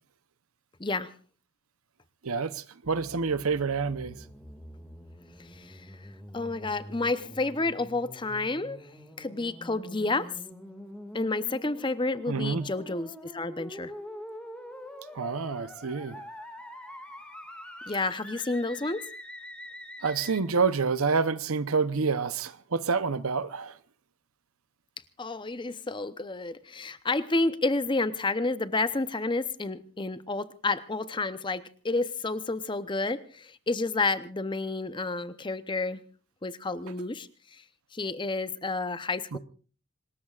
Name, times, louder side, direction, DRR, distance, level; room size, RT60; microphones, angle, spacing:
voice 1, 0.8-1.1 5.5-5.9 6.3-8.8 9.2-10.3 11.1-13.9 17.9-19.0 25.2-36.0 36.4-37.6 37.9-39.4, left 3 dB, 20° left, 0.7 m, -30 dB
voice 2, 2.2-4.2 12.3-12.7 15.1-16.2 20.0-23.8 39.3-39.4, right 5 dB, 75° right, 0.8 m, -28 dB
sound 1, 2.8-20.4, equal, 5° left, 2.1 m, -45 dB
26.0 x 20.0 x 2.4 m
head